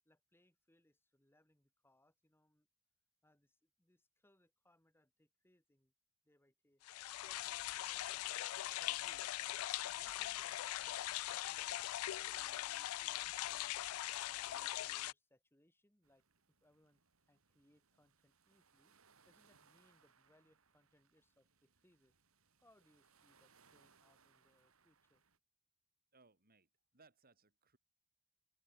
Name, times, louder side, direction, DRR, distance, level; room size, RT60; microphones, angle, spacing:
voice 1, 0.0-2.7 3.2-5.9 6.2-6.8 7.2-8.3 8.7-9.6 9.9-17.0 17.3-18.9 19.2-22.1 22.6-25.2, left 1 dB, 10° left, 3.1 m, -73 dB
sound 1, 6.8-15.1, left 15 dB, 85° left, 0.3 m, -41 dB
sound 2, 16.0-25.4, right 5 dB, 75° right, 4.1 m, -72 dB
voice 2, 26.1-27.8, right 4 dB, 45° right, 4.6 m, -68 dB
open air
head